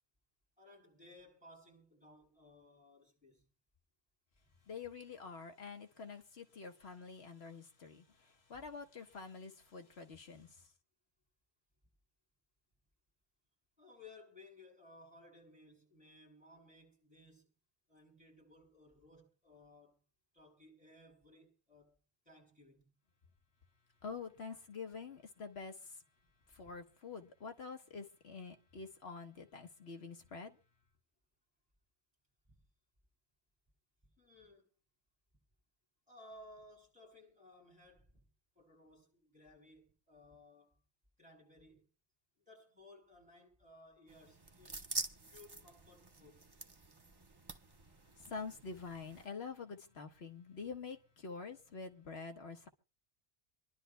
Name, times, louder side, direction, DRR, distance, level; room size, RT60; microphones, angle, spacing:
voice 1, 0.6-3.5 13.8-17.5 17.9-20.0 20.3-21.9 22.3-22.9 32.5-32.6 34.2-34.6 36.1-38.2 38.6-40.8 41.2-41.9 42.5-44.9 45.3-46.5, left 2 dB, 5° right, 7.1 m, -60 dB
voice 2, 4.7-8.0 8.5-10.5 24.0-25.7 26.6-30.5 48.3-52.7, left 5 dB, 70° left, 1.5 m, -47 dB
sound 1, 44.1-49.3, right 3 dB, 25° right, 0.8 m, -46 dB
27.0 x 11.5 x 2.2 m
omnidirectional pair, 1.1 m